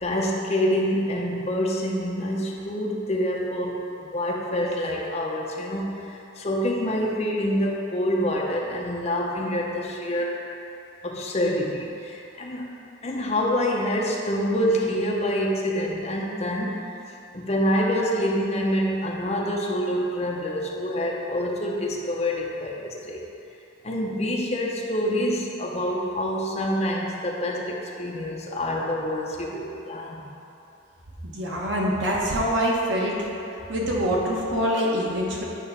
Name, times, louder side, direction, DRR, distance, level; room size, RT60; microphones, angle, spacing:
voice 1, 0.0-10.5 11.0-12.8 13.0-16.8 17.3-23.2 23.8-30.3, equal, 35° left, -2 dB, 0.7 m, -26 dB
voice 2, 31.2-33.2 33.7-35.4, equal, 65° right, -4 dB, 1.1 m, -25 dB
8.3 x 3.0 x 5.6 m, 2.9 s
head